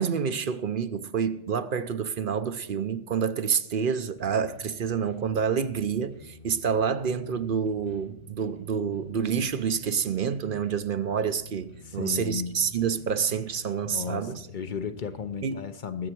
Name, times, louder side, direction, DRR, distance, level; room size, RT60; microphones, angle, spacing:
voice 1, 0.0-14.4 15.4-15.6, right 7 dB, 60° right, 0.8 m, -28 dB
sound 1, 4.2-15.3, right 1 dB, 75° left, 5.3 m, -49 dB
voice 2, 11.8-12.6 13.8-16.1, left 7 dB, 55° left, 0.8 m, -34 dB
20.0 x 8.0 x 4.5 m
omnidirectional pair, 1.0 m